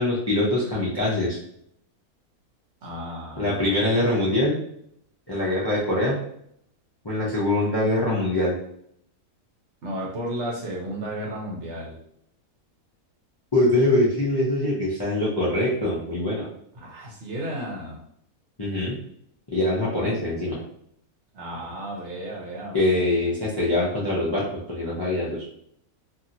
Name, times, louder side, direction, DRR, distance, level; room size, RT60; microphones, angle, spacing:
voice 1, 0.0-1.4 3.4-4.5 5.3-6.2 7.0-8.6 13.5-16.5 18.6-19.0 19.5-20.6 22.7-25.4, left 1 dB, 35° left, -7 dB, 0.4 m, -23 dB
voice 2, 2.8-3.7 9.8-12.0 16.7-18.0 21.3-23.2, right 1 dB, 55° right, -3 dB, 1.0 m, -33 dB
2.9 x 2.6 x 2.6 m, 0.70 s
omnidirectional pair, 1.6 m